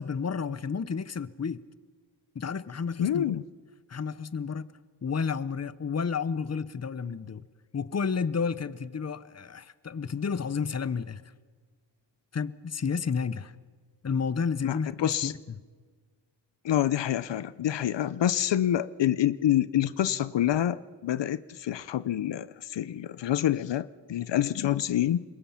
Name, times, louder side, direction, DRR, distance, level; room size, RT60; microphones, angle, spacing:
voice 1, 0.0-1.6 2.3-3.4 3.9-4.7 5.0-7.5 7.7-11.2 12.3-13.5 14.0-15.3, left 5 dB, 40° left, 0.9 m, -31 dB
voice 2, 3.0-3.4 14.6-15.3 16.6-25.2, left 11 dB, 85° left, 0.7 m, -27 dB
27.0 x 22.5 x 5.8 m
wide cardioid pair, 80°, 42 cm